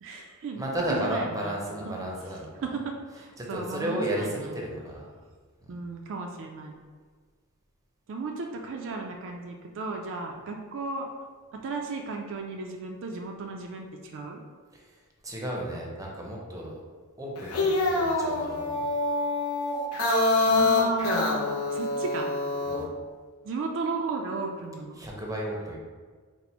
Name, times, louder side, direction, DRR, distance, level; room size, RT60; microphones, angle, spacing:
voice 1, 0.0-2.1 2.6-4.6 5.7-6.7 8.1-11.1 11.5-13.9 14.1-14.4 20.4-22.3 23.4-25.0, right 4 dB, 60° right, 2 dB, 0.4 m, -35 dB
voice 2, 0.6-2.5 3.4-5.1 5.6-5.7 14.7-16.8 17.2-18.9 20.5-20.6 22.7-22.9 25.0-25.8, right 1 dB, 15° right, -2 dB, 0.6 m, -33 dB
sound 1, 17.4-22.8, left 2 dB, 70° left, 0.7 m, -26 dB
4.2 x 2.1 x 4.2 m, 1.6 s
head